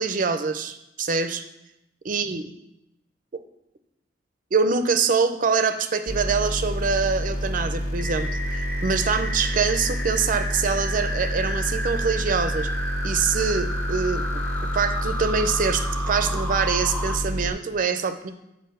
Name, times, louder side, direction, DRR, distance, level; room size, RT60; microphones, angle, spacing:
voice 1, 0.0-1.4 2.0-2.4 3.3-3.4 4.5-12.7 13.0-14.4 14.7-18.3, right 5 dB, 50° right, 9 dB, 0.5 m, -24 dB
sound 1, 6.1-17.5, equal, 40° left, 1.6 m, -28 dB
sound 2, 8.0-17.2, equal, 10° left, 0.7 m, -33 dB
6.6 x 4.9 x 6.4 m, 0.88 s
head